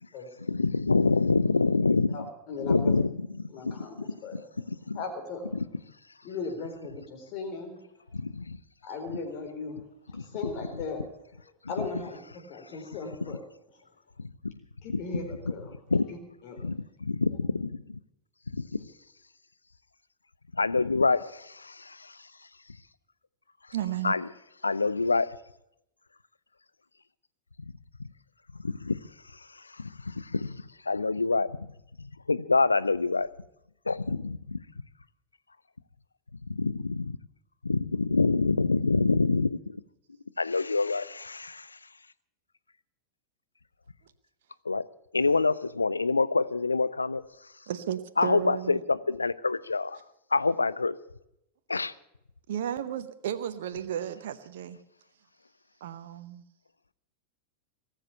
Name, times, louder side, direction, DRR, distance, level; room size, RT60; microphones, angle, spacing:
voice 1, 0.5-2.2 2.6-4.4 4.7-5.0 5.5-5.6 8.1-8.6 10.1-10.2 14.2-14.3 14.9-15.0 15.9-16.1 16.6-18.0 18.5-18.7 20.6-22.1 24.0-24.3 24.6-25.3 28.6-29.0 29.8-31.7 32.0-33.3 33.9-34.6 36.6-37.2 37.6-39.8 40.4-41.8 44.7-44.8 45.1-47.2 48.2-50.0 50.3-51.0 51.7-51.9, left 3 dB, 80° left, 0.5 m, -26 dB
voice 2, 2.1-2.9 3.5-4.0 4.2-4.3 4.9-5.5 6.2-7.8 8.8-9.8 10.1-11.0 11.7-13.4 14.8-15.7 16.1-16.2 16.4-16.6, left 4 dB, 45° left, 4.1 m, -37 dB
voice 3, 23.7-24.2 47.7-48.8 52.5-54.8 55.8-56.4, right 10 dB, 55° right, 0.9 m, -33 dB
19.0 x 7.6 x 10.0 m
figure-of-eight pair, 90°, 0 cm